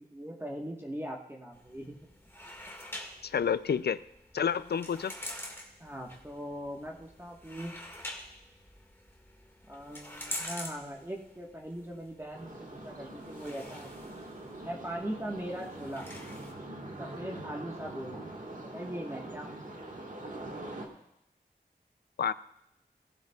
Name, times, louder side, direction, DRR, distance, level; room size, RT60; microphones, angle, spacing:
voice 1, 0.0-2.1 5.8-7.7 9.7-14.1 14.6-16.1 16.8-18.2 18.5-19.6, equal, 15° right, -1 dB, 1.4 m, -40 dB
sound 1, 1.5-16.5, left 1 dB, 15° left, 1.8 m, -46 dB
voice 2, 3.2-4.0 4.3-5.1 22.2-22.3, left 7 dB, 80° left, 16 dB, 0.4 m, -29 dB
sound 2, 12.3-20.9, right 2 dB, 50° right, 1.6 m, -43 dB
17.5 x 11.5 x 2.3 m, 0.84 s
wide cardioid pair, 60°, 17 cm